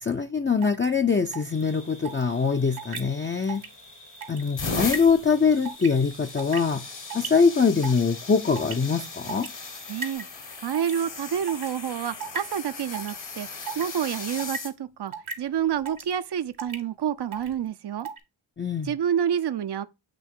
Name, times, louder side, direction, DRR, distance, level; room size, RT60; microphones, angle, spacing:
voice 1, 0.0-3.6 4.3-6.8 7.1-9.5 18.6-18.9, left 5 dB, 25° left, 0.5 m, -23 dB
sound 1, 0.6-0.8 1.3-1.6 2.0-2.2 2.8-3.0 3.4-3.7 3.9-4.4 4.9-5.1 5.6-5.9 6.3-6.7 7.1-7.3 7.8-8.2 8.6-8.8 9.3-9.5 10.0-10.3 10.7-11.0 11.5-11.7 12.2-12.4 12.9-13.2 13.7-13.9 14.3-14.6 15.1-15.3 15.9-16.1 16.6-16.8 17.3-17.5 18.0-18.2, right 5 dB, 80° right, 1.6 m, -34 dB
sound 2, 1.5-10.2, left 1 dB, 90° left, 3.3 m, -48 dB
sound 3, 3.6-3.9 4.4-14.7 15.6-15.9 17.4-17.5, left 4 dB, 60° left, 1.4 m, -37 dB
voice 2, 9.9-10.3 10.6-13.5 13.8-18.1 18.9-19.9, right 9 dB, 55° right, 0.6 m, -28 dB
7.8 x 3.1 x 4.6 m
cardioid pair, 50°, 49 cm